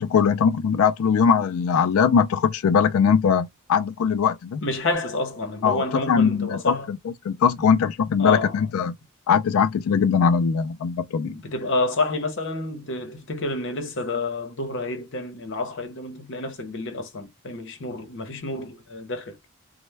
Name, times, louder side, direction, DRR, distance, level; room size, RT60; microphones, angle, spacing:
voice 1, 0.0-4.6 5.6-7.0 7.2-8.9 9.3-11.4, left 6 dB, 70° left, 0.3 m, -21 dB
voice 2, 4.6-6.9 8.2-8.7 11.2-19.3, left 2 dB, 55° left, 0.8 m, -29 dB
3.2 x 2.1 x 3.2 m
head